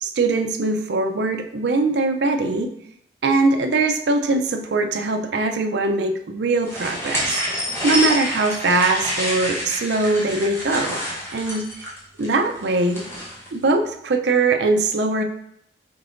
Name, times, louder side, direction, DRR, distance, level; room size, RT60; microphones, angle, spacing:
voice 1, 0.0-2.7 3.2-7.3 7.8-11.0 11.3-11.9 12.2-13.0 13.5-15.2, right 3 dB, 65° right, 5 dB, 0.5 m, -21 dB
sound 1, 6.7-13.5, equal, 15° left, 1.0 m, -28 dB
5.2 x 3.8 x 2.5 m, 0.75 s
head